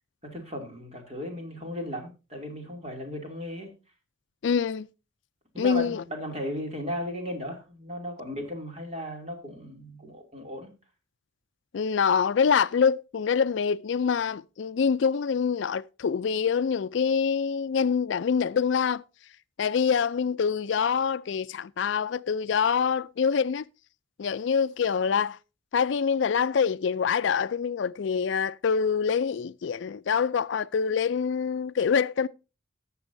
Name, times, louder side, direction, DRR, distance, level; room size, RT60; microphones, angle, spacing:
voice 1, 0.3-3.7 5.5-10.7, equal, 30° right, 2.6 m, -36 dB
voice 2, 4.4-4.9 5.6-6.0 11.7-19.0 19.6-23.7 24.2-25.4 25.7-32.3, left 6 dB, 65° left, 0.4 m, -25 dB
18.0 x 6.9 x 2.6 m
head